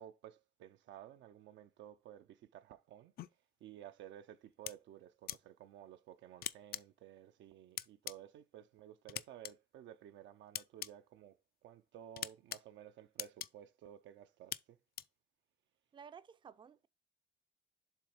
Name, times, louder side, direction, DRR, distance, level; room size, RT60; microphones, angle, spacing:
voice 1, 0.0-3.1 3.6-14.8, right 11 dB, 85° right, 0.6 m, -54 dB
sound 1, 3.2-3.3 4.7-4.8 5.3-5.4 6.4-6.8 7.8-8.1 9.1-9.5 10.5-10.9 12.2-12.6 13.2-13.5 14.5-14.6 15.0-15.1, left 11 dB, 55° left, 0.4 m, -40 dB
voice 2, 15.9-16.9, right 7 dB, 25° right, 0.4 m, -54 dB
7.4 x 3.0 x 4.9 m
cardioid pair, 90°, 18 cm